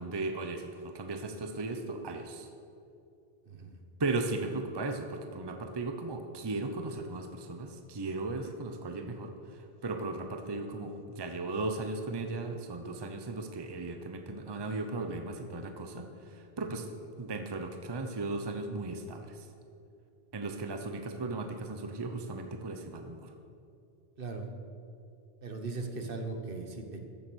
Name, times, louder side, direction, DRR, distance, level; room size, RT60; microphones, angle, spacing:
voice 1, 0.0-2.5 4.0-9.3 9.8-16.1 16.3-16.9 17.2-19.4 20.3-23.3, right 2 dB, 25° right, 5 dB, 0.8 m, -36 dB
voice 2, 25.4-27.0, right 3 dB, 60° right, 5 dB, 1.3 m, -38 dB
14.5 x 7.2 x 6.3 m, 2.6 s
omnidirectional pair, 1.1 m